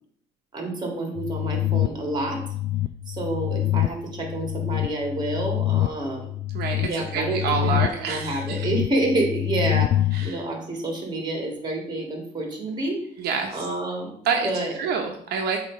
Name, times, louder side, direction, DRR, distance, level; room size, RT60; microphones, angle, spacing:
voice 1, 0.5-2.4 3.1-6.3 6.8-7.8 8.1-9.9 10.2-13.3 13.5-14.1 14.4-14.7, right 2 dB, 25° right, 2 dB, 2.1 m, -28 dB
sound 1, 1.2-10.3, left 14 dB, 45° left, 0.4 m, -26 dB
voice 2, 6.5-8.7 10.1-10.4 13.2-13.6 14.2-14.5 14.8-15.6, right 5 dB, 70° right, 2 dB, 1.0 m, -27 dB
7.3 x 3.1 x 5.0 m, 0.67 s
cardioid pair, 105°, 17 cm